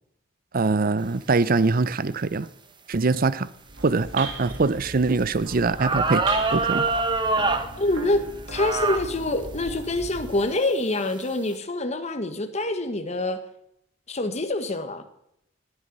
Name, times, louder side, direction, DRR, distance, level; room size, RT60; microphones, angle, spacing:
voice 1, 0.5-2.5 2.9-3.5 3.8-6.2 6.5-6.9, right 3 dB, 50° right, 0.6 m, -23 dB
sound 1, 3.6-10.5, right 2 dB, 75° right, 2.7 m, -38 dB
sound 2, 5.2-5.3 5.8-7.7 8.5-9.1 9.7-9.8 10.5-10.8, right 3 dB, 25° right, 1.1 m, -24 dB
voice 2, 7.8-8.2 8.5-13.4 14.1-15.0, left 2 dB, 35° left, 1.4 m, -26 dB
19.0 x 9.8 x 5.4 m
head